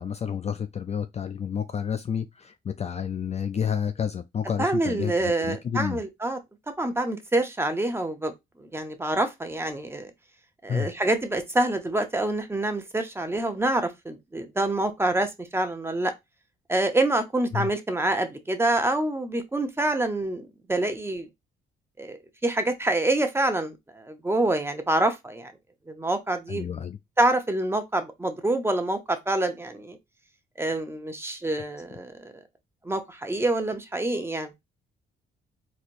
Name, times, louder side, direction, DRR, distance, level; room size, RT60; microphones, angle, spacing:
voice 1, 0.0-6.0 10.7-10.9 17.5-17.7 26.5-27.0, left 7 dB, 35° left, 0.4 m, -30 dB
voice 2, 4.6-6.4 6.8-8.3 8.6-10.1 10.6-16.1 16.7-21.3 22.0-22.2 22.4-25.5 25.9-26.6 27.2-30.0 30.6-32.3 32.8-34.5, right 2 dB, 10° right, 0.7 m, -26 dB
4.1 x 2.9 x 2.5 m
cardioid pair, 90°, 20 cm